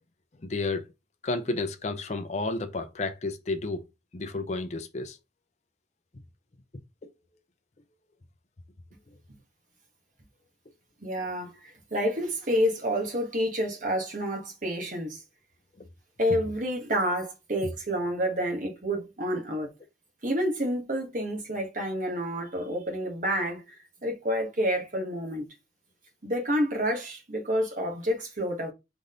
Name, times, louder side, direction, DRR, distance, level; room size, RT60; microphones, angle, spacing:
voice 1, 0.4-0.8 1.2-3.8 4.1-5.2, left 3 dB, 40° left, 0.5 m, -31 dB
voice 2, 11.0-15.2 16.2-19.7 20.2-23.6 24.0-25.5 26.2-28.7, equal, 45° right, 1.5 m, -29 dB
3.8 x 3.7 x 3.7 m
head